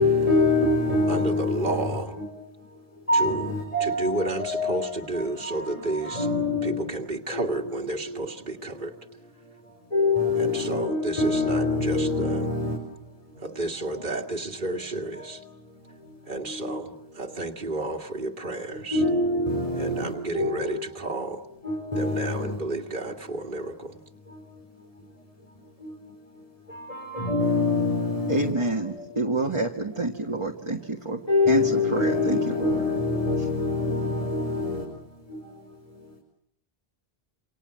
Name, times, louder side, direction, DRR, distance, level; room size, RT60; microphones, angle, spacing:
voice 1, 0.0-1.9 2.2-2.3 2.6-6.8 7.3-8.3 8.6-8.9 9.4-13.4 13.8-14.0 15.2-16.8 18.7-20.8 21.6-22.6 24.3-25.0 25.8-29.1 29.9-30.1 31.3-36.1, left 3 dB, 35° left, 5.2 m, -27 dB
voice 2, 1.1-2.2 3.1-3.5 3.8-6.3 6.6-8.9 10.4-12.5 13.4-15.4 16.2-19.0 19.8-21.4 21.9-24.0, right 2 dB, 50° right, 2.2 m, -31 dB
voice 3, 28.3-31.2 31.5-32.7, right 2 dB, 30° right, 1.9 m, -27 dB
29.0 x 26.5 x 7.7 m
omnidirectional pair, 1.1 m